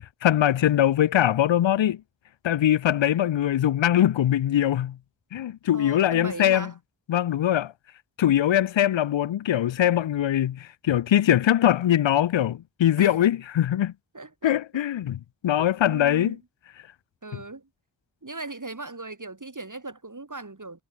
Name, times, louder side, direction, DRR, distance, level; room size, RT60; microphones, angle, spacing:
voice 1, 0.2-2.0 2.4-5.0 5.3-6.7 7.1-7.7 8.2-13.9 14.4-16.4 17.3-17.4, left 11 dB, 85° left, 0.6 m, -22 dB
voice 2, 5.7-6.7 13.0-13.2 14.1-14.8 15.6-16.4 17.2-17.7 18.2-20.8, right 3 dB, 45° right, 7.6 m, -38 dB
wide cardioid pair, 55°, 44 cm